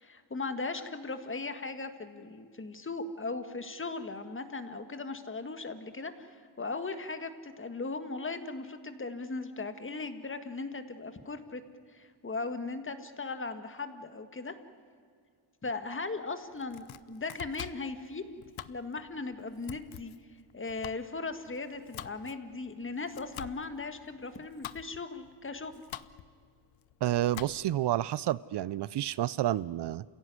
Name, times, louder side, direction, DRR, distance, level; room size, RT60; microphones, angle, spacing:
voice 1, 0.0-11.6 11.9-14.6 15.6-20.1 20.5-25.7, left 3 dB, 25° left, 9 dB, 1.8 m, -38 dB
Domestic sounds home sounds, 16.5-27.9, left 12 dB, 80° left, 0.9 m, -48 dB
voice 2, 27.0-30.0, right 13 dB, 60° right, 19 dB, 0.5 m, -30 dB
29.0 x 16.5 x 9.6 m, 2.1 s
cardioid pair, 115°, 46 cm